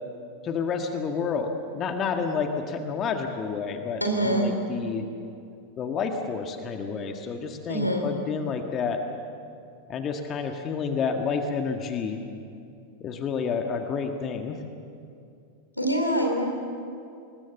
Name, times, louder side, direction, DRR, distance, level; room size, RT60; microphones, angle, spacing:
voice 1, 0.4-5.1 5.8-9.0 9.9-12.2 13.0-14.6, left 5 dB, 30° left, 5 dB, 1.7 m, -29 dB
voice 2, 4.0-4.5 7.7-8.1 15.8-16.5, right 1 dB, 85° left, 3 dB, 3.5 m, -24 dB
26.5 x 21.0 x 7.0 m, 2.5 s
figure-of-eight pair, 90°, 0 cm